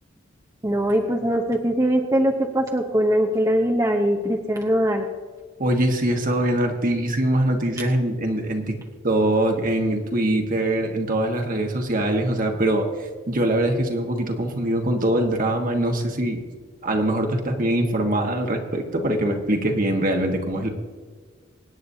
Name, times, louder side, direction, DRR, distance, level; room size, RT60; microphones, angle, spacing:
voice 1, 0.6-5.1, equal, 20° right, 0 dB, 0.8 m, -21 dB
voice 2, 5.6-8.8 9.0-16.4 16.8-20.7, right 1 dB, 45° right, 3 dB, 1.5 m, -23 dB
24.5 x 9.3 x 2.8 m, 1.5 s
head